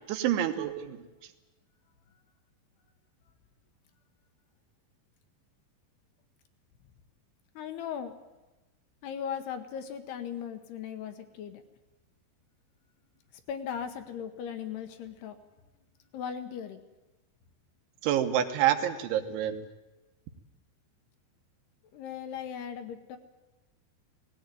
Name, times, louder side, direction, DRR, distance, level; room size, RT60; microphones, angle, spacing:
voice 1, 0.1-1.1 18.0-19.6, right 11 dB, 85° right, 7 dB, 3.6 m, -27 dB
voice 2, 7.6-8.1 9.0-11.6 13.5-15.4 16.1-16.8 21.9-23.2, left 8 dB, 75° left, 8 dB, 2.8 m, -38 dB
18.0 x 17.0 x 9.0 m, 1.1 s
omnidirectional pair, 5.3 m